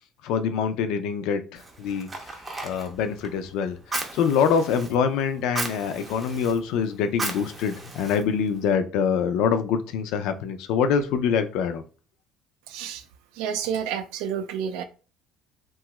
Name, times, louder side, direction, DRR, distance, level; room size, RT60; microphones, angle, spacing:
voice 1, 0.2-2.1 2.6-3.8 4.1-11.8, left 6 dB, 70° left, 0.4 m, -25 dB
Fire, 1.5-8.7, right 2 dB, 15° right, 0.4 m, -37 dB
voice 2, 12.7-13.0 13.3-14.8, right 8 dB, 90° right, 0.4 m, -30 dB
2.8 x 2.3 x 2.9 m
cardioid pair, 155°, 0 cm